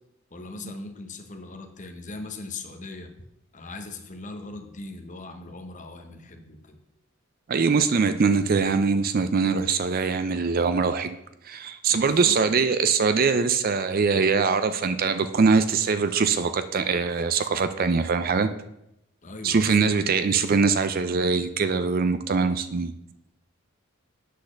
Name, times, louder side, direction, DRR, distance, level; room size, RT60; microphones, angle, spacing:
voice 1, 0.3-3.1 3.5-6.8 11.9-12.4 19.2-20.0, left 3 dB, 35° left, 6 dB, 0.9 m, -40 dB
voice 2, 7.5-11.2 11.5-18.5 19.4-22.9, right 5 dB, 45° right, 11 dB, 0.4 m, -22 dB
8.3 x 4.1 x 6.4 m, 0.82 s
head